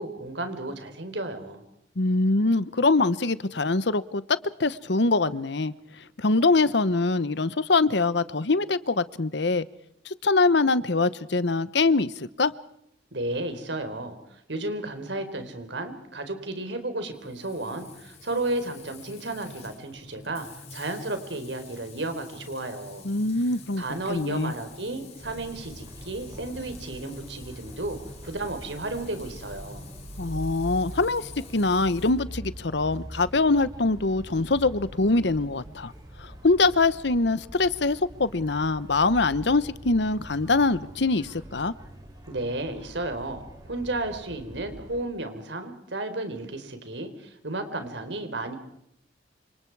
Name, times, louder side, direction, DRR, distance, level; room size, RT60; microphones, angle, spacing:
voice 1, 0.0-1.6 13.1-23.0 23.8-28.0 28.2-29.9 42.3-48.6, right 2 dB, 75° right, 8 dB, 4.3 m, -33 dB
voice 2, 2.0-5.7 6.2-9.7 10.0-12.5 23.0-23.8 24.1-24.5 30.2-35.9 36.2-41.7, left 3 dB, 70° left, 16 dB, 1.0 m, -23 dB
Frying (food), 17.1-32.1, left 3 dB, 40° left, 6.9 m, -47 dB
sound 1, 25.2-45.0, equal, 20° right, 6.0 m, -43 dB
29.0 x 27.0 x 4.8 m, 0.76 s
head